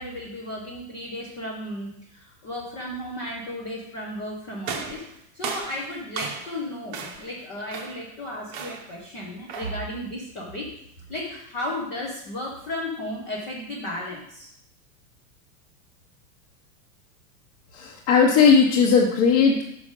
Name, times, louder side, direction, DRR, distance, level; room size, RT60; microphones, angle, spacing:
voice 1, 0.0-5.0 5.3-10.7 11.1-14.5, left 1 dB, 15° left, -4 dB, 0.4 m, -34 dB
sound 1, 4.6-6.6 6.9-7.3 7.7-8.1 8.5-9.0 9.5-9.9, right 5 dB, 35° right, 0.8 m, -35 dB
voice 2, 17.7-19.7, left 5 dB, 35° left, -3 dB, 0.9 m, -18 dB
6.1 x 5.1 x 5.3 m, 0.75 s
supercardioid pair, 165°, 49 cm